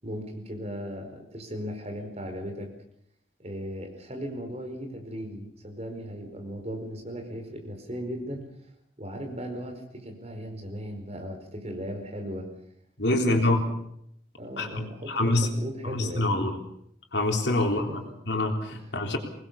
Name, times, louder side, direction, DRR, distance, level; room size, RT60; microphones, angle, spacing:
voice 1, 0.0-2.7 3.4-8.5 9.0-12.5 13.1-13.4 14.4-16.3 17.9-18.1 18.7-18.8, equal, 35° right, 4 dB, 4.9 m, -37 dB
voice 2, 13.0-13.6 14.6-15.5 15.8-16.6 17.1-19.2, left 2 dB, 70° left, 3 dB, 3.7 m, -26 dB
23.5 x 20.0 x 7.0 m, 0.72 s
head